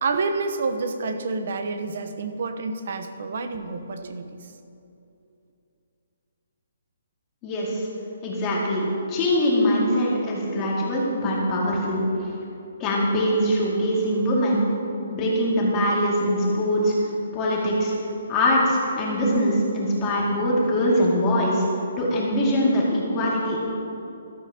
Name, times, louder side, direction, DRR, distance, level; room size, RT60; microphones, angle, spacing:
voice 1, 0.0-4.5, right 4 dB, 55° right, 8 dB, 0.9 m, -28 dB
voice 2, 7.4-7.9 8.2-12.3 12.8-14.6 15.1-16.9 17.3-17.9 18.3-21.6 22.0-23.6, equal, 20° left, -5 dB, 2.2 m, -22 dB
13.5 x 13.0 x 2.9 m, 2.8 s
hypercardioid pair, 165°, 0 cm